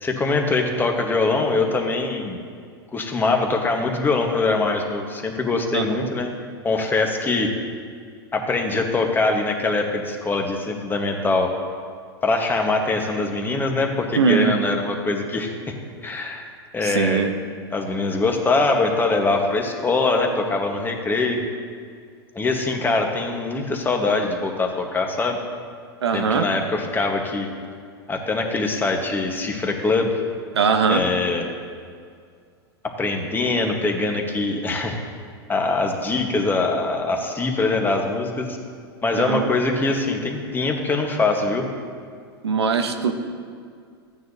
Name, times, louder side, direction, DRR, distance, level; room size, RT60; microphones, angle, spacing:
voice 1, 0.0-2.4 2.9-6.4 6.6-7.5 8.3-11.5 12.2-15.7 16.0-16.4 16.7-17.3 17.7-21.4 22.3-25.4 26.1-27.5 28.1-30.2 30.9-31.5 33.0-35.0 35.5-38.6 39.0-41.7, left 3 dB, 15° left, 3 dB, 1.2 m, -23 dB
voice 2, 5.7-6.1 14.2-14.5 16.8-17.3 26.0-26.5 30.5-31.0 39.2-39.5 42.4-43.1, right 5 dB, 90° right, 6 dB, 0.8 m, -21 dB
14.0 x 9.4 x 2.7 m, 2.2 s
hypercardioid pair, 110°, 13 cm